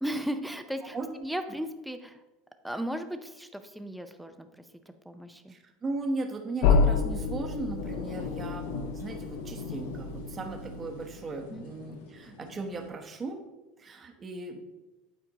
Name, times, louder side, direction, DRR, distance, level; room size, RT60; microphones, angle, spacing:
voice 1, 0.0-2.2 2.6-4.7 5.0-5.5 11.5-11.7, equal, ahead, 7 dB, 0.6 m, -36 dB
voice 2, 5.5-13.4 13.8-14.6, right 3 dB, 25° right, 4 dB, 1.0 m, -37 dB
sound 1, 6.6-11.3, left 5 dB, 70° left, 0.6 m, -29 dB
sound 2, 7.8-12.9, left 3 dB, 90° left, 0.9 m, -42 dB
8.6 x 4.3 x 4.0 m, 1.0 s
supercardioid pair, 110°, 0 cm